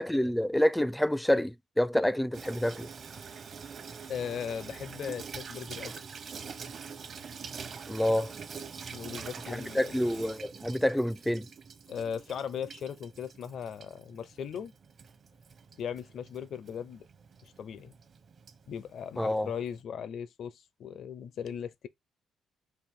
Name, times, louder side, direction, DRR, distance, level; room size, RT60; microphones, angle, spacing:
voice 1, 0.0-2.9 7.9-8.3 9.5-11.5 19.2-19.5, left 1 dB, 5° left, 0.4 m, -28 dB
Water tap faucet / Sink (filling or washing), 2.3-19.8, right 6 dB, 50° right, 0.9 m, -45 dB
voice 2, 4.1-6.0 8.9-9.9 11.9-14.7 15.8-17.1 17.4-17.9 18.7-21.9, left 8 dB, 65° left, 0.6 m, -38 dB
5.6 x 2.5 x 3.6 m
cardioid pair, 90°, 0 cm